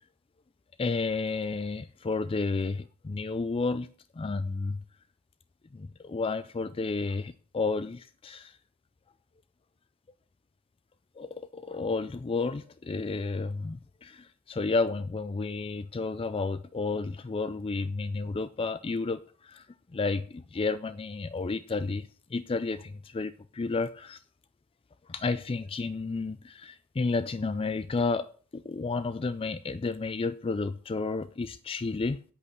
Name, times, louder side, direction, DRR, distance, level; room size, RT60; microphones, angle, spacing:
voice 1, 0.8-3.9 4.2-4.8 5.7-8.5 11.2-19.6 19.9-24.2 25.1-28.3 28.5-32.2, left 3 dB, 25° left, 0.4 m, -31 dB
8.5 x 8.1 x 5.5 m
head